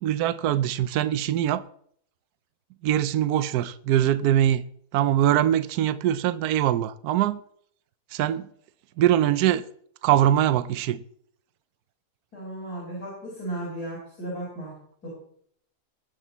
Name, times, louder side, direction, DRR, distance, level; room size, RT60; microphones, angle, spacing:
voice 1, 0.0-1.7 2.8-4.6 4.9-7.4 8.1-8.5 9.0-9.6 10.0-11.0, right 11 dB, 75° right, 1.2 m, -22 dB
voice 2, 12.3-14.7 15.0-15.1, right 1 dB, 70° left, 5.5 m, -35 dB
20.5 x 7.9 x 4.1 m
omnidirectional pair, 1.7 m